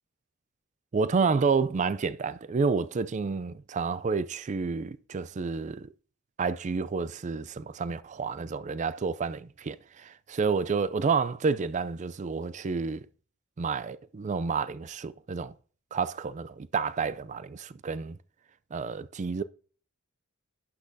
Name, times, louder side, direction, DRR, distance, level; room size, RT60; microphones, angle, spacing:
voice 1, 0.9-5.9 6.4-13.0 13.6-15.5 15.9-18.2 18.7-19.4, right 5 dB, 35° right, 0.4 m, -29 dB
11.5 x 8.4 x 2.7 m
head